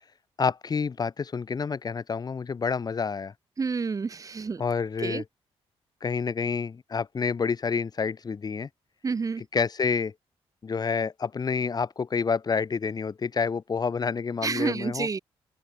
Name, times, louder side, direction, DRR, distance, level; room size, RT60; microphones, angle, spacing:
voice 1, 0.4-3.3 4.6-5.3 6.0-8.7 9.4-10.1 10.6-15.1, left 5 dB, 40° left, 2.1 m, -28 dB
voice 2, 3.6-4.6 5.0-5.2 9.0-9.4 14.4-15.2, right 5 dB, 35° right, 1.2 m, -29 dB
open air
cardioid pair, 100°, 10 cm